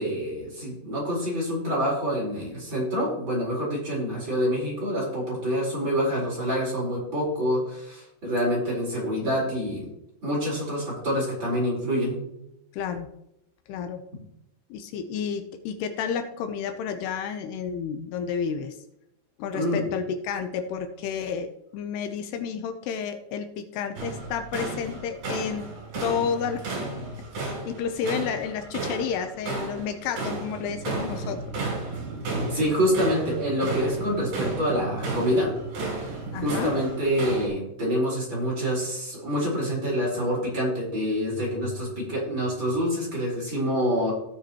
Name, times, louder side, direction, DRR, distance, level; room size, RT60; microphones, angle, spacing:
voice 1, 0.0-9.9 10.2-12.2 19.5-19.9 32.5-35.5 36.0-44.1, equal, 30° right, -5 dB, 4.7 m, -26 dB
voice 2, 12.7-13.1 13.7-14.1 14.7-18.8 19.4-25.7 26.0-26.6 27.4-31.4 36.3-36.7, left 7 dB, 85° left, 7 dB, 2.7 m, -31 dB
sound 1, 24.0-37.5, right 2 dB, 65° right, 5.3 m, -33 dB
17.0 x 6.6 x 3.0 m, 0.82 s
omnidirectional pair, 4.8 m